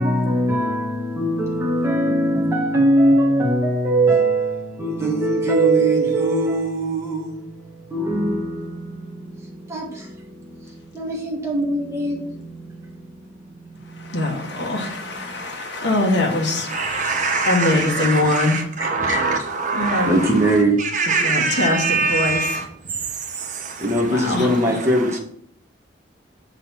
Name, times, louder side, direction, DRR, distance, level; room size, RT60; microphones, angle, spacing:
voice 1, 0.0-14.9 15.2-15.4 17.7-18.1 18.8-19.5 20.1-20.8 23.8-25.2, right 1 dB, 15° right, 1.4 m, -22 dB
voice 2, 14.0-18.6 19.7-20.2 21.2-22.6 24.1-24.5, left 2 dB, 75° left, 1.5 m, -23 dB
voice 3, 16.7-22.6 23.2-24.0 24.4-24.5, right 4 dB, 45° right, 1.2 m, -24 dB
6.8 x 4.1 x 5.7 m
head